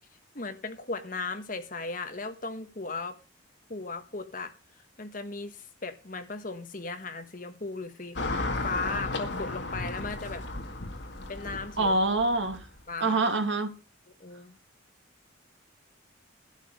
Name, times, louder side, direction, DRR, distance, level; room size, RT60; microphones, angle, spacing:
voice 1, 0.3-3.2 3.7-4.5 5.0-8.2 8.6-10.4 11.3-12.0 12.9-13.2 14.2-14.5, left 3 dB, 40° left, 1.3 m, -36 dB
Car passing by / Traffic noise roadway noise, 8.2-12.8, left 2 dB, 60° left, 2.0 m, -34 dB
voice 2, 11.8-12.6 13.0-13.8, right 2 dB, 70° right, 2.0 m, -25 dB
12.0 x 9.2 x 5.2 m
head